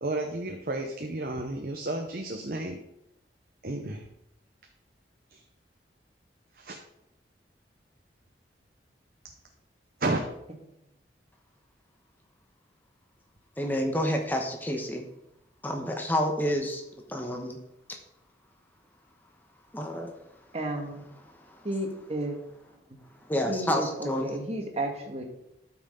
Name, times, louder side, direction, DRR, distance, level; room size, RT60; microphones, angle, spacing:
voice 1, 0.0-2.8 3.6-4.0 5.3-5.4 6.5-6.8 10.0-10.2, right 2 dB, 55° right, 3 dB, 0.9 m, -32 dB
voice 2, 13.6-15.0 15.6-16.8 17.1-17.6 19.7-20.1 23.3-24.3, equal, 10° left, 2 dB, 1.1 m, -29 dB
voice 3, 20.5-21.0 21.6-22.4 22.7-23.0 23.5-25.2, right 1 dB, 35° right, 2 dB, 1.6 m, -33 dB
13.0 x 6.0 x 3.8 m, 0.83 s
head